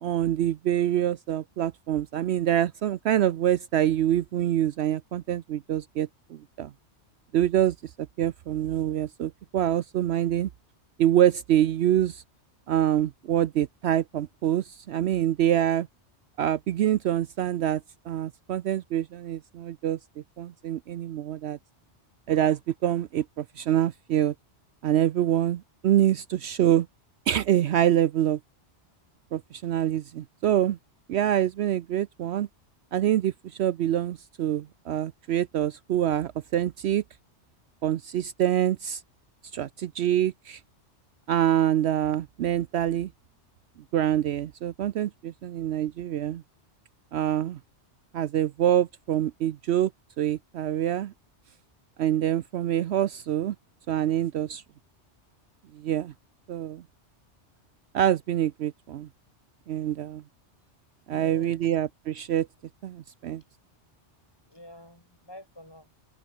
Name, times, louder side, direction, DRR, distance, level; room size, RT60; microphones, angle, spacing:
voice 1, 0.0-6.7 7.3-7.8 8.2-10.5 11.0-12.2 12.7-15.9 16.4-21.6 22.3-24.3 24.8-26.9 27.3-28.4 29.3-30.8 31.1-32.5 32.9-37.0 37.8-39.0 39.5-40.6 41.3-43.1 43.9-46.4 47.1-47.6 48.1-49.9 50.2-51.1 52.0-53.5 53.9-54.6 55.7-56.1 56.5-56.8 57.9-59.1 59.7-60.2 61.1-62.5 62.8-63.4, right 11 dB, 70° right, 0.8 m, -25 dB
voice 2, 61.1-61.7 64.5-65.9, left 1 dB, 20° left, 4.3 m, -47 dB
omnidirectional pair, 1.2 m